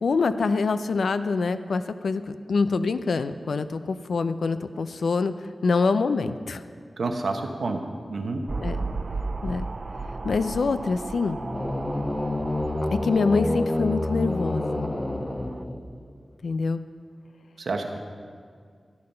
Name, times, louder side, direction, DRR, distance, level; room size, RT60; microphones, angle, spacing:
voice 1, 0.0-5.3 5.6-6.6 8.6-8.8 9.4-9.7 10.2-11.4 13.0-14.9 16.4-16.8, left 4 dB, 90° left, 11 dB, 0.5 m, -25 dB
voice 2, 7.0-7.8 8.1-8.4 17.6-18.0, right 3 dB, 85° right, 4 dB, 1.1 m, -28 dB
sound 1, 8.5-15.6, right 3 dB, 45° right, 0.4 m, -35 dB
sound 2, 11.4-16.1, left 1 dB, 25° left, 0.7 m, -28 dB
13.5 x 8.8 x 5.6 m, 2.1 s
wide cardioid pair, 85°, 0 cm